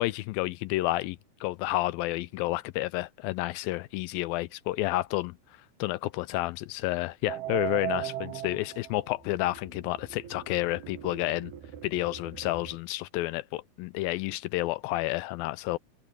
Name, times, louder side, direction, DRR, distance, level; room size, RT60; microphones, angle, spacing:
voice 1, 0.0-5.4 5.8-11.5 11.8-15.8, left 18 dB, 85° left, 2.1 m, -30 dB
sound 1, 7.3-12.8, right 12 dB, 80° right, 3.6 m, -38 dB
omnidirectional pair, 4.5 m